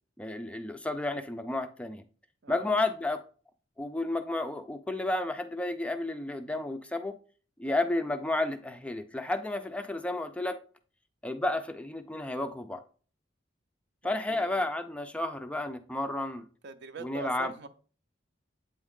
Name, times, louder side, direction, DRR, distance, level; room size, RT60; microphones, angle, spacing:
voice 1, 0.2-2.0 2.5-3.2 3.8-7.2 7.6-10.6 11.2-12.8 14.0-16.4 17.0-17.5, left 2 dB, 5° left, 0.3 m, -32 dB
voice 2, 2.4-2.8 14.3-14.6 16.6-17.7, right 4 dB, 60° right, 0.5 m, -43 dB
8.1 x 3.5 x 3.6 m
head